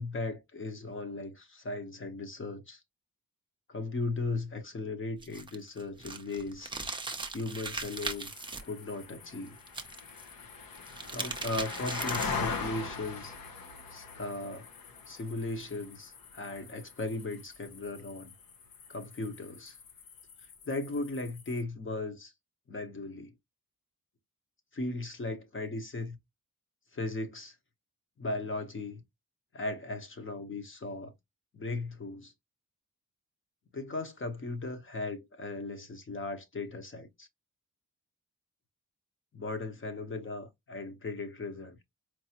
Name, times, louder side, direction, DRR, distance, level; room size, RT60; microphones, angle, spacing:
voice 1, 0.0-2.8 3.7-6.7 7.3-8.3 8.6-9.6 11.1-13.3 13.9-14.7 15.1-18.3 18.9-19.8 20.6-22.3 22.7-23.3 24.7-26.2 26.9-27.6 28.2-29.0 29.5-31.1 31.5-32.3 33.7-37.3 39.3-41.8, left 2 dB, 35° left, 1.0 m, -37 dB
sound 1, 5.2-8.6 9.7-10.2 10.7-12.5, right 3 dB, 15° right, 0.6 m, -38 dB
sound 2, 7.9-21.6, left 5 dB, 85° left, 1.0 m, -42 dB
4.6 x 2.6 x 2.9 m
wide cardioid pair, 150°, 34 cm